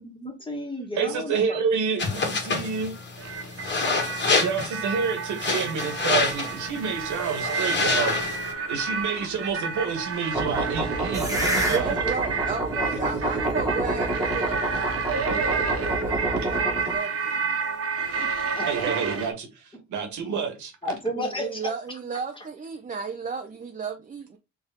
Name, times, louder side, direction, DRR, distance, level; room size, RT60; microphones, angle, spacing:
voice 1, 0.0-1.6 11.9-13.2 18.2-18.3 18.5-19.0 19.7-19.8 20.8-22.0 22.3-22.5, left 1 dB, 15° left, 1.8 m, -34 dB
voice 2, 1.0-3.0 4.4-8.2 8.7-12.0 15.3-15.4 16.4-16.5 16.8-16.9 18.7-19.5 19.9-20.7, right 6 dB, 75° right, 1.4 m, -28 dB
sound 1, 2.0-8.5, left 3 dB, 35° left, 1.9 m, -28 dB
sound 2, 3.2-19.3, right 5 dB, 50° right, 1.2 m, -30 dB
sound 3, 10.3-16.9, right 1 dB, 10° right, 1.6 m, -28 dB
voice 3, 11.7-17.6 21.2-24.4, right 5 dB, 25° right, 0.6 m, -34 dB
4.2 x 3.4 x 3.6 m
cardioid pair, 90°, 30 cm